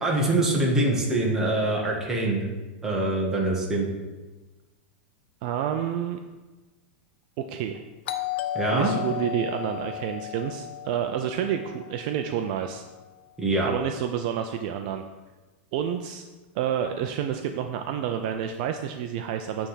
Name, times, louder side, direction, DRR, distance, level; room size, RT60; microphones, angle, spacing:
voice 1, 0.0-2.5 2.8-3.9 8.5-8.9 13.4-13.7, right 2 dB, 5° right, -3 dB, 1.3 m, -24 dB
voice 2, 5.4-6.2 7.4-7.8 8.7-12.8 13.6-15.0 15.7-16.2 16.5-19.7, right 9 dB, 45° right, 6 dB, 0.4 m, -29 dB
Doorbell, 8.1-12.7, left 10 dB, 75° left, 0.6 m, -34 dB
8.6 x 3.4 x 5.6 m, 1.2 s
supercardioid pair, 160°, 6 cm